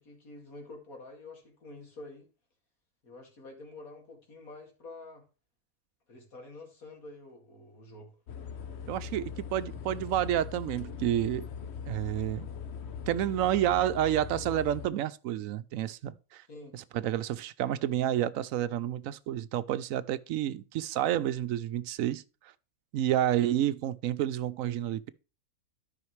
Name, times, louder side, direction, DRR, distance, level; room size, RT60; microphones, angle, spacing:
voice 1, 0.0-2.3 3.0-5.2 6.1-8.1 16.5-16.8, left 2 dB, 85° left, 2.8 m, -48 dB
sound 1, 8.3-14.9, left 7 dB, 55° left, 0.9 m, -40 dB
voice 2, 8.9-11.5 11.9-12.5 13.1-16.4 16.7-22.2 22.9-25.1, right 12 dB, 75° right, 0.9 m, -29 dB
12.5 x 5.7 x 3.2 m
omnidirectional pair, 1.5 m